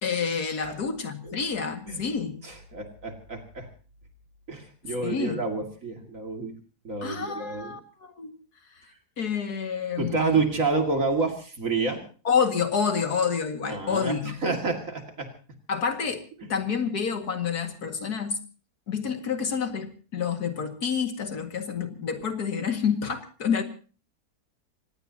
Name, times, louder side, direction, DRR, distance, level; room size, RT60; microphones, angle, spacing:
voice 1, 0.0-2.4 5.0-5.4 7.0-8.3 9.2-10.4 12.2-14.3 15.7-18.4 18.9-23.6, left 6 dB, 85° left, 6 dB, 2.6 m, -28 dB
voice 2, 2.4-3.7 4.5-6.6 6.8-7.7 10.0-12.0 13.7-15.3, right 3 dB, 55° right, 3 dB, 2.7 m, -29 dB
26.0 x 18.5 x 2.9 m, 0.38 s
omnidirectional pair, 1.6 m